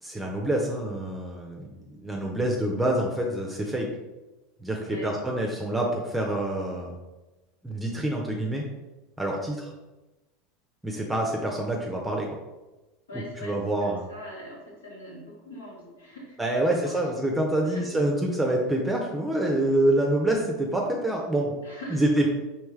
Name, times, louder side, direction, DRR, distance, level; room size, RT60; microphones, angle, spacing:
voice 1, 0.0-3.9 4.6-7.0 7.6-8.6 9.2-9.7 10.8-12.3 13.4-14.0 16.4-21.5 21.9-22.3, right 1 dB, 10° right, 0 dB, 0.6 m, -26 dB
voice 2, 13.1-17.3 17.6-17.9 21.6-22.1, equal, 80° left, -3 dB, 1.2 m, -42 dB
4.5 x 3.1 x 3.2 m, 1.1 s
figure-of-eight pair, 80°, 0 cm